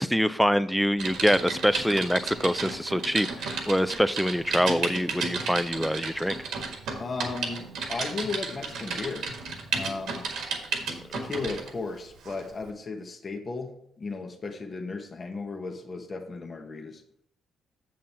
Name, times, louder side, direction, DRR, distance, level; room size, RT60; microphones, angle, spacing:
voice 1, 0.0-6.4, equal, ahead, 14 dB, 0.4 m, -25 dB
Typing, 1.0-11.7 12.2-12.4, right 4 dB, 80° right, 1.7 m, -33 dB
voice 2, 7.0-9.3 9.7-10.3 11.1-17.0, left 4 dB, 35° left, 4 dB, 1.1 m, -35 dB
7.5 x 7.2 x 4.3 m, 0.69 s
cardioid pair, 90°, 0 cm